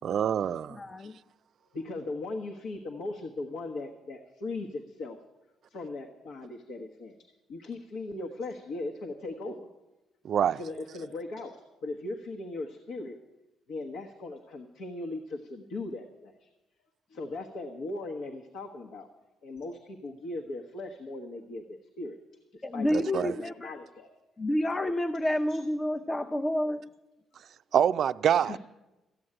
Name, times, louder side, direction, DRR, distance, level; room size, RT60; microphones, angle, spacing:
voice 1, 0.0-0.8 10.2-10.6 22.9-23.3 27.7-28.6, right 9 dB, 65° right, 0.4 m, -26 dB
voice 2, 0.7-1.2 22.6-23.8 24.4-26.9, left 1 dB, 25° left, 0.7 m, -29 dB
voice 3, 1.7-5.2 5.7-7.2 7.5-9.7 10.3-13.2 13.7-16.5 17.1-19.1 19.4-22.2 22.5-24.1 25.5-25.6 28.4-28.6, left 2 dB, 80° left, 1.2 m, -38 dB
14.0 x 7.9 x 8.7 m
cardioid pair, 90°, 0 cm